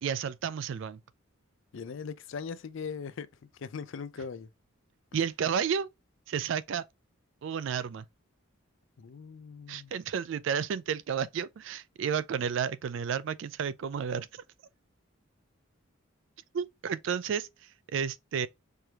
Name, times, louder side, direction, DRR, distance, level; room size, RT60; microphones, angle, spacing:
voice 1, 0.0-1.0 5.1-5.9 6.3-6.8 7.4-8.0 9.7-14.4 16.5-18.5, right 7 dB, 60° right, 0.3 m, -32 dB
voice 2, 1.7-3.3 3.6-4.5 9.0-9.9, left 5 dB, 65° left, 0.4 m, -39 dB
4.5 x 3.3 x 2.3 m
head